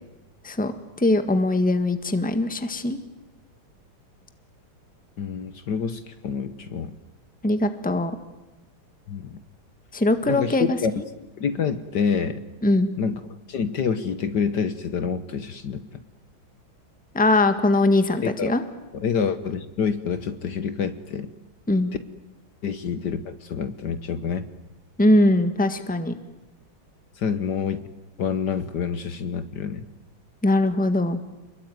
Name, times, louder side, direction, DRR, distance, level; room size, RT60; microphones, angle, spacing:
voice 1, 1.0-3.0 7.4-8.2 9.9-11.0 12.6-12.9 17.1-18.6 21.7-21.9 25.0-26.1 30.4-31.2, left 2 dB, 5° left, 9 dB, 1.4 m, -21 dB
voice 2, 5.2-6.9 9.1-9.4 10.3-10.9 11.4-12.4 13.0-13.2 13.5-15.8 18.2-18.5 18.9-21.3 22.6-24.5 27.2-27.8 28.2-29.8, left 6 dB, 60° left, 11 dB, 1.6 m, -27 dB
28.0 x 21.5 x 9.4 m, 1.0 s
omnidirectional pair, 2.2 m